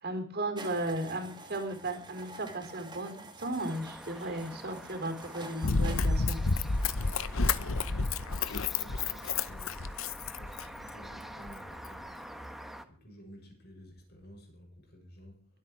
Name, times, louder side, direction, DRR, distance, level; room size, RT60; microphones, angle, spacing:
voice 1, 0.0-6.4, right 1 dB, 55° right, 3.8 m, -35 dB
sound 1, 0.6-9.1, right 2 dB, 20° right, 2.4 m, -49 dB
sound 2, 3.6-12.8, equal, ahead, 1.3 m, -47 dB
Run, 5.6-10.9 11.5-11.6, left 4 dB, 85° left, 0.9 m, -30 dB
voice 2, 8.6-9.8 10.3-12.2 12.9-15.5, equal, 55° left, 7.0 m, -53 dB
23.0 x 8.7 x 4.8 m
head